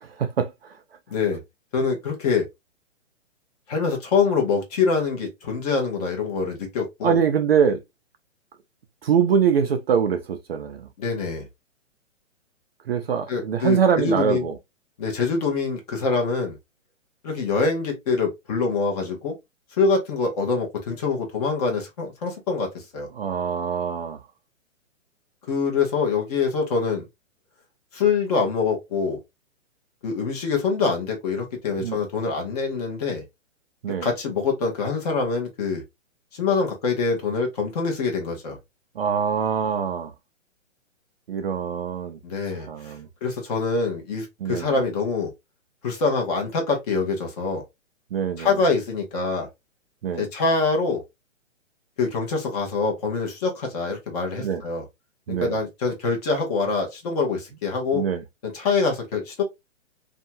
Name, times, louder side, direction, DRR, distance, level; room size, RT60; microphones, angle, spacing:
voice 1, 0.0-0.8 7.0-7.8 9.0-10.9 12.9-14.5 23.1-24.2 31.8-32.0 33.8-34.1 39.0-40.1 41.3-42.2 42.5-43.1 44.4-44.8 48.1-48.6 50.0-50.3 54.4-54.6 55.3-55.6 57.9-58.2, right 7 dB, 50° right, 0.4 m, -24 dB
voice 2, 1.1-1.4 1.7-2.5 3.7-7.2 11.0-11.5 13.3-14.5 15.0-16.6 17.2-19.3 19.8-23.1 25.5-27.0 27.9-29.2 30.0-33.2 34.0-35.8 36.3-38.6 42.2-42.9 43.2-45.3 45.8-47.6 48.4-49.5 50.2-51.0 52.0-54.8 55.3-58.0 58.4-59.4, left 4 dB, 30° left, 0.9 m, -25 dB
2.7 x 2.3 x 2.6 m
hypercardioid pair, 160°, 39 cm